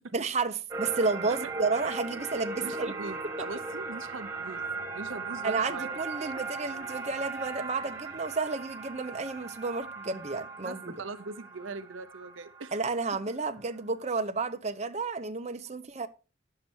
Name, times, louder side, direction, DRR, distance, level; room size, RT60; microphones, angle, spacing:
voice 1, 0.1-2.9 5.4-10.9 12.7-16.1, right 4 dB, 35° right, 0.8 m, -31 dB
sound 1, 0.7-13.3, right 3 dB, 15° right, 1.6 m, -38 dB
voice 2, 1.3-1.6 2.6-4.7 4.9-6.0 10.3-12.8, right 3 dB, 85° right, 0.8 m, -41 dB
10.5 x 6.7 x 4.4 m
head